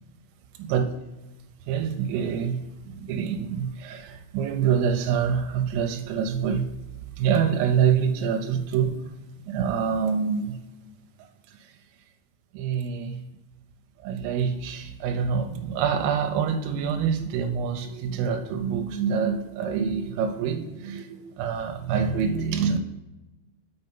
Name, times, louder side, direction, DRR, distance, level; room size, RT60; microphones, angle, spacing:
voice 1, 1.7-6.7 7.2-9.0 9.5-10.6 12.5-13.2 14.0-22.8, right 7 dB, 90° right, 5 dB, 3.3 m, -26 dB
7.5 x 5.4 x 5.4 m, 1.0 s
omnidirectional pair, 5.8 m